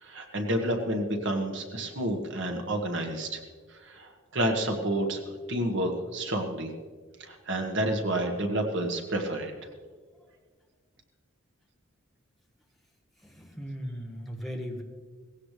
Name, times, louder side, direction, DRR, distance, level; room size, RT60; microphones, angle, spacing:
voice 1, 0.0-3.4 3.8-6.7 7.2-9.5, right 1 dB, 60° right, 3 dB, 1.5 m, -30 dB
voice 2, 13.2-14.8, equal, ahead, -1 dB, 1.5 m, -37 dB
18.5 x 16.0 x 3.3 m, 1.5 s
head